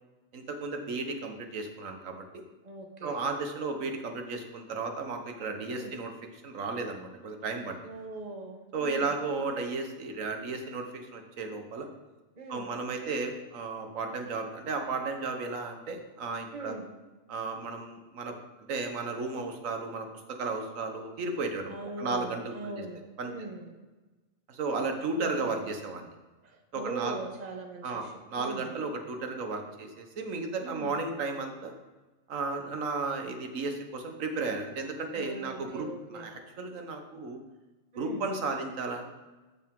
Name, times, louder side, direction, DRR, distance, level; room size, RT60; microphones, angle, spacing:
voice 1, 0.3-2.4 3.0-7.9 8.7-11.9 12.5-16.7 17.3-18.3 18.7-22.8 23.2-23.5 24.5-26.1 26.7-27.2 27.8-31.7 32.3-37.4 38.0-39.0, right 3 dB, 85° right, 4 dB, 1.4 m, -34 dB
voice 2, 2.6-3.2 5.6-5.9 7.8-9.1 12.4-12.7 16.5-16.9 21.7-23.8 25.1-25.7 26.4-28.7 30.6-30.9 35.1-36.3 37.9-38.2, right 3 dB, 35° right, 3 dB, 1.1 m, -41 dB
13.5 x 4.6 x 3.7 m, 1.2 s
omnidirectional pair, 1.3 m